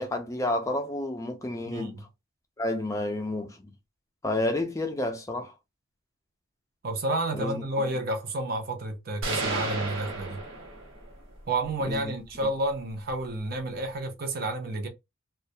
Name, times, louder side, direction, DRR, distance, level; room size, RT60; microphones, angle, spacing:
voice 1, 0.0-2.0 2.6-3.7 4.2-5.5 7.3-7.6 11.8-12.1 12.4-12.5, left 1 dB, 15° left, 0.4 m, -30 dB
voice 2, 1.7-2.0 6.8-10.4 11.5-14.9, right 2 dB, 50° right, 0.6 m, -30 dB
sound 1, 9.2-11.2, right 2 dB, 75° right, 0.9 m, -32 dB
2.3 x 2.0 x 2.6 m
head